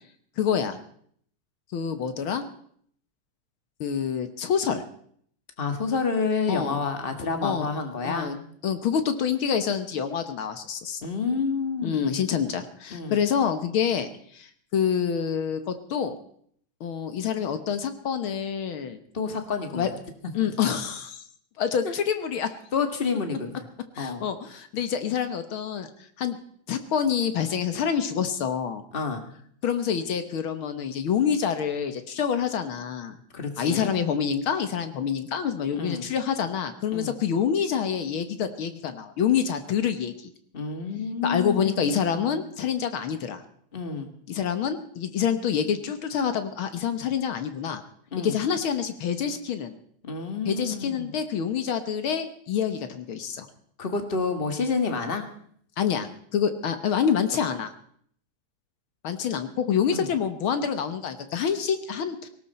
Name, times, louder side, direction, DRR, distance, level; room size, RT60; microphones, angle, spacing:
voice 1, 0.4-0.8 1.7-2.4 3.8-4.8 6.5-6.8 7.4-7.7 8.0-8.4 8.6-11.1 11.8-16.2 16.8-19.0 19.7-19.9 20.3-21.2 21.6-22.5 23.9-25.9 26.2-26.4 26.7-28.8 29.6-33.1 33.6-40.1 41.2-43.4 44.3-47.8 48.2-49.7 50.4-53.5 55.8-57.7 59.0-62.3, left 7 dB, 60° left, 9 dB, 1.5 m, -27 dB
voice 2, 5.6-8.4 11.0-12.2 12.9-13.2 19.1-20.0 20.4-20.5 21.8-21.9 22.7-23.7 24.0-24.3 28.9-29.3 33.3-33.9 35.8-36.1 36.9-37.1 40.5-42.3 43.7-44.1 48.1-48.4 50.0-51.1 53.8-55.3 59.9-60.1, left 4 dB, 25° left, 6 dB, 1.3 m, -29 dB
18.5 x 18.0 x 4.3 m, 0.63 s
omnidirectional pair, 3.4 m